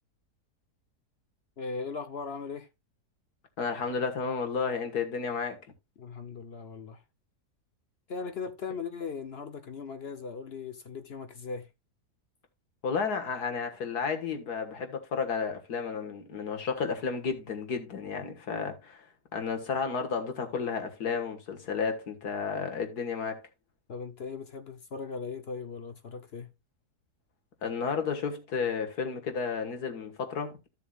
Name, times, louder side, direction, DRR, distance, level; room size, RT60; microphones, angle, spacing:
voice 1, 1.6-2.7 6.0-7.0 8.1-11.7 23.9-26.5, left 5 dB, 50° left, 0.8 m, -38 dB
voice 2, 3.6-5.6 12.8-19.1 19.3-23.4 27.6-30.7, left 5 dB, 70° left, 2.0 m, -32 dB
14.0 x 7.0 x 2.4 m
omnidirectional pair, 1.7 m